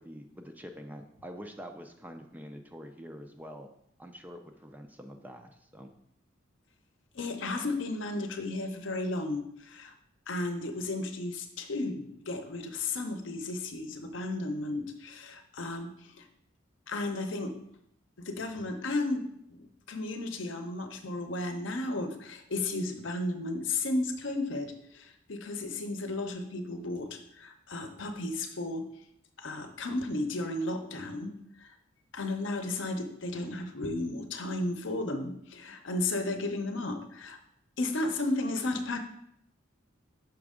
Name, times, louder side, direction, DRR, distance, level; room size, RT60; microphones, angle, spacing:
voice 1, 0.0-3.7 4.0-5.9, equal, 10° right, 5 dB, 0.3 m, -46 dB
voice 2, 7.1-9.9 10.3-16.3 16.9-17.5 18.2-19.2 19.5-28.8 29.4-31.3 31.6-31.7 32.1-37.4 37.8-39.0, left 2 dB, 70° left, 6 dB, 0.7 m, -34 dB
5.9 x 5.2 x 3.6 m, 0.74 s
head